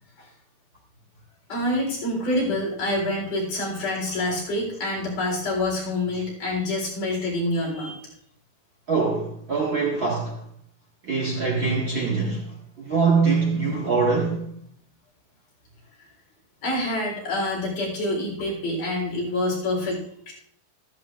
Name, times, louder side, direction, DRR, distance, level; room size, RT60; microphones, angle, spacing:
voice 1, 1.5-8.0 16.6-20.3, left 1 dB, 65° left, 5.4 m, -27 dB
voice 2, 8.9-10.4 11.0-12.4 12.8-14.5, right 4 dB, 40° right, 2.2 m, -23 dB
13.5 x 13.5 x 2.5 m
omnidirectional pair, 4.1 m